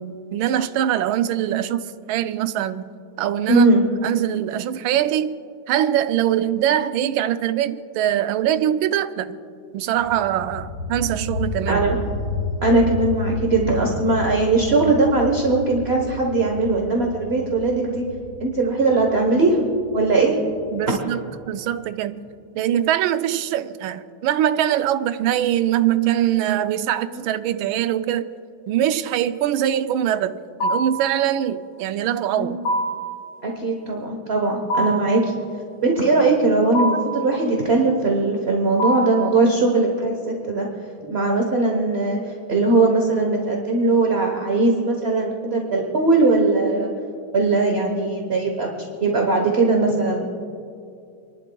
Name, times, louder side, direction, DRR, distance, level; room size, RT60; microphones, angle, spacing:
voice 1, 0.0-3.7 4.0-5.4 5.7-9.4 9.7-11.8 20.7-22.3 22.5-28.3 28.7-32.6 41.1-41.2, right 11 dB, 80° right, 1.4 m, -23 dB
voice 2, 3.5-3.9 11.7-12.0 12.6-18.0 18.4-19.7 19.9-20.4 20.9-21.0 27.1-27.2 32.3-32.6 33.4-35.4 35.8-40.7 41.1-46.9 47.3-48.7 49.0-50.3, right 3 dB, 40° right, 1.0 m, -20 dB
sound 1, 10.0-21.5, left 1 dB, 65° left, 2.0 m, -31 dB
sound 2, 30.6-31.1 32.7-33.1 34.7-35.2 36.7-37.2 38.8-39.3, right 1 dB, 85° left, 1.8 m, -23 dB
28.5 x 11.5 x 2.3 m
omnidirectional pair, 2.2 m